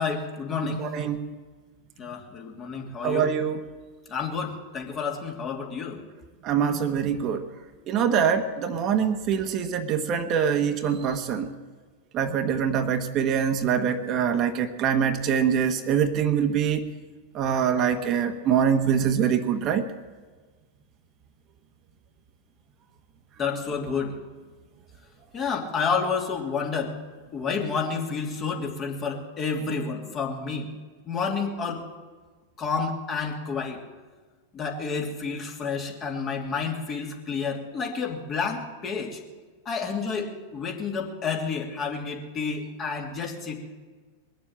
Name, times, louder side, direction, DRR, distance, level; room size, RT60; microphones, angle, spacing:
voice 1, 0.0-0.9 2.0-3.3 4.1-6.0 23.4-24.2 25.3-26.9 27.3-30.7 31.0-31.8 32.6-33.8 34.5-39.2 39.6-43.6, left 5 dB, 30° left, 1 dB, 3.0 m, -30 dB
voice 2, 0.7-1.3 3.0-3.6 6.4-7.4 7.9-11.5 12.1-16.9 17.3-19.9, right 7 dB, 40° right, 7 dB, 1.2 m, -24 dB
21.5 x 7.4 x 8.9 m, 1.4 s
hypercardioid pair, 95°, 0 cm